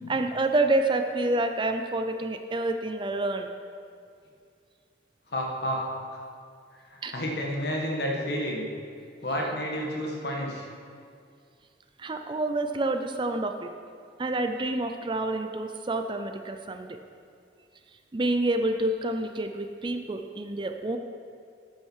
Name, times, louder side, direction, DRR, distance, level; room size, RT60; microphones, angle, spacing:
voice 1, 0.1-3.5 7.0-7.1 12.0-13.7 14.2-17.0 18.1-21.0, right 2 dB, 25° right, 6 dB, 0.4 m, -28 dB
voice 2, 5.3-5.8 6.9-8.6 9.2-10.7, equal, 60° left, -1 dB, 1.7 m, -30 dB
11.0 x 8.7 x 4.7 m, 2.3 s
head